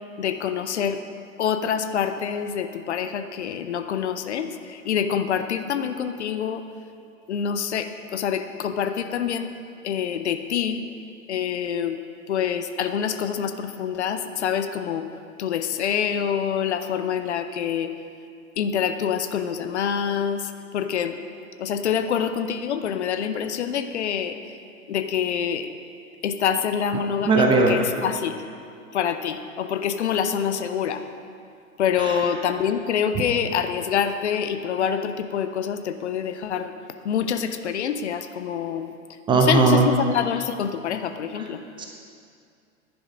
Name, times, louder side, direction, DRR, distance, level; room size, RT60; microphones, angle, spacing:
voice 1, 0.2-1.0 1.4-6.6 7.3-9.5 9.8-10.8 11.3-12.0 12.3-15.0 15.4-17.9 18.6-20.4 20.7-21.2 21.6-24.4 24.9-25.7 26.2-28.4 28.9-31.0 31.8-36.7 37.0-38.9 39.3-41.6, left 8 dB, 50° left, 9 dB, 0.7 m, -26 dB
voice 2, 27.2-27.8 32.0-32.2 39.3-39.9 41.3-41.4 41.8-41.9, right 4 dB, 10° right, 1 dB, 0.6 m, -18 dB
10.5 x 9.9 x 5.1 m, 2.4 s
figure-of-eight pair, 100°, 43 cm